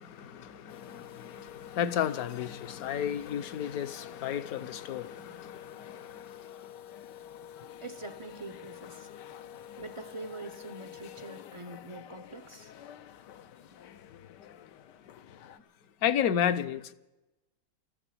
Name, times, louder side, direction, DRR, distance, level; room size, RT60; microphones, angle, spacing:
voice 1, 0.0-6.5 16.0-16.9, left 9 dB, 65° left, 1.1 m, -32 dB
sound 1, 0.7-15.6, left 10 dB, 85° left, 1.4 m, -48 dB
voice 2, 7.6-9.1 9.8-12.7, right 2 dB, 45° right, 0.3 m, -44 dB
14.5 x 10.0 x 9.6 m
omnidirectional pair, 1.8 m